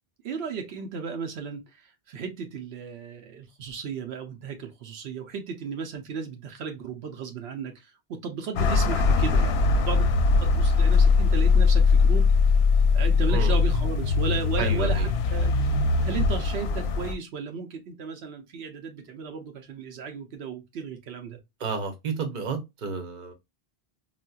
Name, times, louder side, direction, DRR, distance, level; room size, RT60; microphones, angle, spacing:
voice 1, 0.2-12.3 12.9-15.7 16.0-21.4, right 5 dB, 85° right, 0.9 m, -35 dB
sound 1, 8.6-17.1, left 4 dB, 90° left, 0.8 m, -21 dB
voice 2, 14.6-15.1 21.6-23.3, right 5 dB, 55° right, 0.9 m, -31 dB
4.0 x 2.2 x 2.2 m
omnidirectional pair, 1.0 m